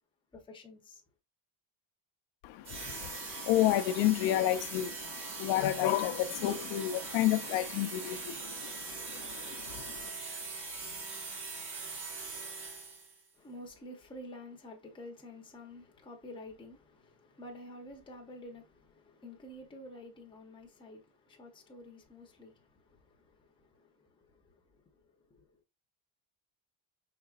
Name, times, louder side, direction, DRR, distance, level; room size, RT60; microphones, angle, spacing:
voice 1, 0.3-1.0 13.3-25.5, left 1 dB, 10° left, 0.7 m, -50 dB
voice 2, 2.4-10.1, left 13 dB, 70° left, 0.6 m, -31 dB
sound 1, 2.6-13.2, right 4 dB, 45° right, 1.5 m, -41 dB
4.9 x 3.7 x 2.4 m
cardioid pair, 175°, 47 cm